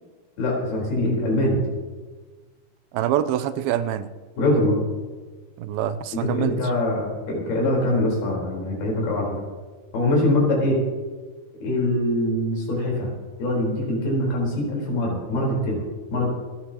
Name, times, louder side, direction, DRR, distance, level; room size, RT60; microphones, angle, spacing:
voice 1, 0.4-1.6 4.4-4.8 6.1-9.3 9.9-10.8 11.6-13.1 13.4-15.8 16.1-16.3, left 1 dB, 85° left, -2 dB, 6.2 m, -23 dB
voice 2, 2.9-4.1 5.6-6.5, right 11 dB, 90° right, 13 dB, 2.5 m, -25 dB
27.5 x 10.5 x 2.9 m, 1.4 s
omnidirectional pair, 4.3 m